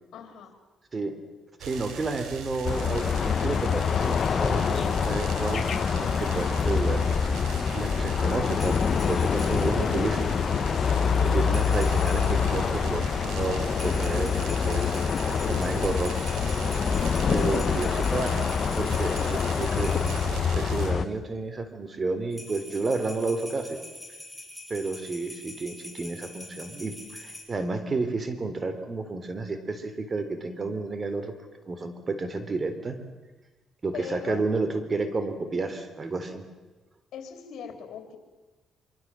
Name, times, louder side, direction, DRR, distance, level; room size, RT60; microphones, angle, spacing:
voice 1, 0.1-0.6 17.2-19.6 33.9-34.4 37.1-38.2, left 8 dB, 70° left, 6 dB, 3.9 m, -40 dB
voice 2, 1.6-7.0 7.7-10.3 11.2-15.0 15.5-16.2 17.3-18.3 18.8-19.9 20.5-23.8 24.7-31.3 31.6-33.0 33.8-36.5, right 3 dB, 35° right, 10 dB, 3.5 m, -31 dB
sound 1, 1.6-20.9, right 6 dB, 90° right, 4.4 m, -39 dB
sound 2, 2.6-21.1, left 6 dB, 50° left, 0.9 m, -26 dB
sound 3, 8.5-9.8 11.4-12.5 13.7-20.4 22.3-27.4, left 1 dB, ahead, 6.6 m, -44 dB
25.0 x 24.0 x 7.6 m, 1.2 s
cardioid pair, 90°, 0 cm